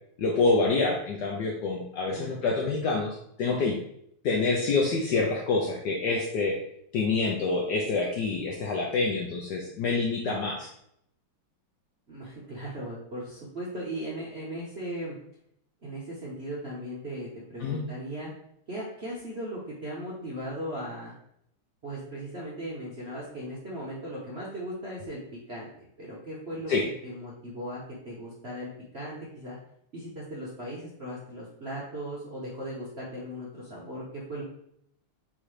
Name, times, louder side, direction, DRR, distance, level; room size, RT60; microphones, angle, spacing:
voice 1, 0.2-3.8 4.2-6.6 6.9-10.7 17.6-17.8 26.7-26.8, left 3 dB, 75° left, 0 dB, 0.9 m, -27 dB
voice 2, 2.1-2.4 12.1-15.2 15.8-18.3 18.7-21.1 21.8-25.2 25.5-25.7 26.0-29.6 29.9-34.4, right 1 dB, 55° right, -6 dB, 0.7 m, -38 dB
4.3 x 3.7 x 3.1 m, 0.72 s
omnidirectional pair, 2.3 m